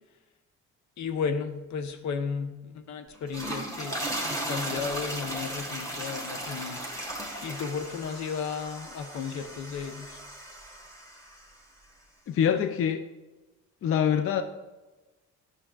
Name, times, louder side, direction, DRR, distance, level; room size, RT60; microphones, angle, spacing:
voice 1, 1.0-10.2, left 6 dB, 70° left, 8 dB, 0.8 m, -34 dB
sound 1, 3.2-11.5, right 1 dB, 10° left, 1.4 m, -36 dB
voice 2, 12.3-13.0 13.8-14.4, left 8 dB, 45° left, 9 dB, 0.4 m, -24 dB
10.0 x 6.3 x 2.3 m, 1.2 s
cardioid pair, 90°, 30 cm